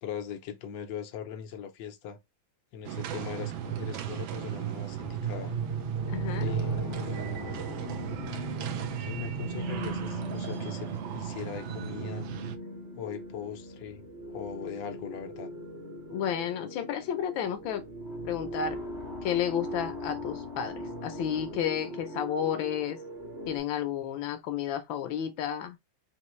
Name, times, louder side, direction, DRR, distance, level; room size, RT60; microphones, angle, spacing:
voice 1, 0.0-2.2 2.7-5.6 6.4-7.6 9.0-12.3 13.0-14.0 14.3-15.5, left 8 dB, 75° left, 1.5 m, -40 dB
sound 1, 2.8-12.6, right 11 dB, 85° right, 1.4 m, -37 dB
sound 2, 4.9-23.6, right 2 dB, 40° right, 2.0 m, -38 dB
voice 2, 6.1-6.5 16.1-17.9 18.2-18.8 19.2-23.0 23.5-25.8, left 9 dB, 90° left, 1.4 m, -32 dB
4.4 x 3.0 x 3.0 m
omnidirectional pair, 2.1 m